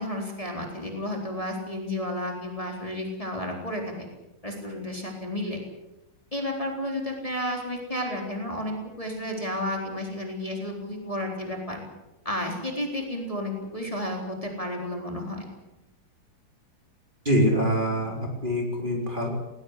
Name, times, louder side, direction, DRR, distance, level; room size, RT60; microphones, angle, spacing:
voice 1, 0.0-4.1 4.4-5.6 6.3-11.8 12.2-15.5, left 1 dB, 15° left, 1 dB, 4.0 m, -32 dB
voice 2, 17.2-19.3, equal, 25° right, 0 dB, 4.1 m, -24 dB
19.5 x 19.5 x 8.2 m, 0.94 s
omnidirectional pair, 2.0 m